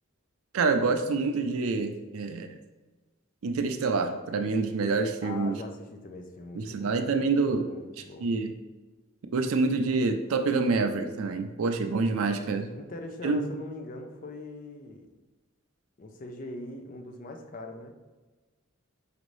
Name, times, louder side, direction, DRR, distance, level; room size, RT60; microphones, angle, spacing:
voice 1, 0.5-2.5 3.4-5.6 6.5-7.7 8.2-8.5 9.3-12.7 13.2-13.5, right 4 dB, 85° right, 7 dB, 0.4 m, -27 dB
voice 2, 5.2-7.0 7.5-8.3 12.7-15.1 16.0-17.9, left 2 dB, 40° left, 4 dB, 0.4 m, -41 dB
5.0 x 2.6 x 3.1 m, 1.2 s
head